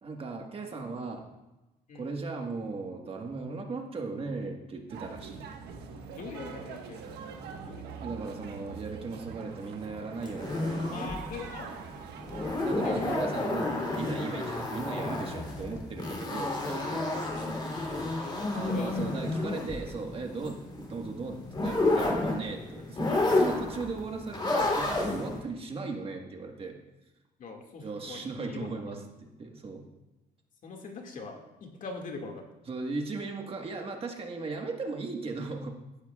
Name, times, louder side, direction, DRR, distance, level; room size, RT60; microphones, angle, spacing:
voice 1, 0.0-1.3 1.9-5.4 8.0-11.1 12.6-17.7 18.5-26.8 27.8-29.0 29.4-29.9 32.7-35.7, right 3 dB, 35° right, 2 dB, 1.5 m, -37 dB
sound 1, 4.9-14.6, right 5 dB, 75° right, 1.4 m, -44 dB
voice 2, 6.1-7.4 7.6-8.0 8.2-8.4 10.9-11.7 12.8-13.2 14.3-14.5 18.2-19.1 19.9-20.0 27.4-28.2 28.5-28.8 30.6-32.4, left 4 dB, 50° left, 2 dB, 2.1 m, -42 dB
sound 2, 10.2-25.4, left 2 dB, 25° left, 3.2 m, -31 dB
15.0 x 12.0 x 2.4 m, 1.0 s
cardioid pair, 110°, 17 cm